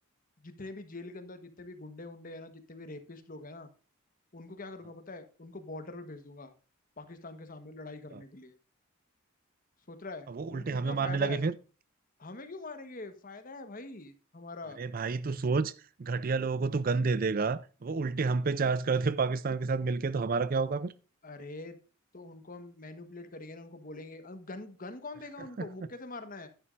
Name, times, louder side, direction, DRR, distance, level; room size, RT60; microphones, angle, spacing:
voice 1, 0.4-3.7 4.3-6.5 7.0-8.5 9.9-11.4 12.2-14.8 21.2-21.8 22.1-26.5, left 2 dB, 40° left, 1.2 m, -44 dB
voice 2, 10.3-11.5 14.8-15.7 16.0-20.9 25.6-25.7, right 4 dB, 40° right, 0.4 m, -29 dB
11.0 x 10.5 x 2.5 m
head